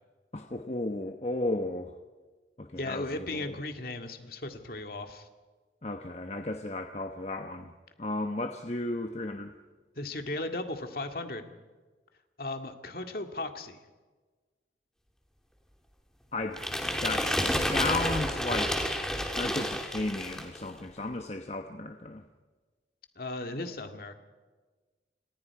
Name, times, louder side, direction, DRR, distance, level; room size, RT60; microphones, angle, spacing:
voice 1, 0.3-1.9 2.6-3.6 5.8-7.7 8.0-9.5 16.3-16.6 17.0-18.9 19.4-22.2, left 2 dB, 35° left, 5 dB, 1.1 m, -34 dB
voice 2, 2.8-5.3 10.0-11.5 12.4-13.8 23.2-24.1, left 2 dB, 55° left, 5 dB, 2.2 m, -36 dB
sound 1, 16.6-20.6, equal, 5° left, 2.7 m, -30 dB
29.5 x 26.0 x 4.9 m, 1.3 s
head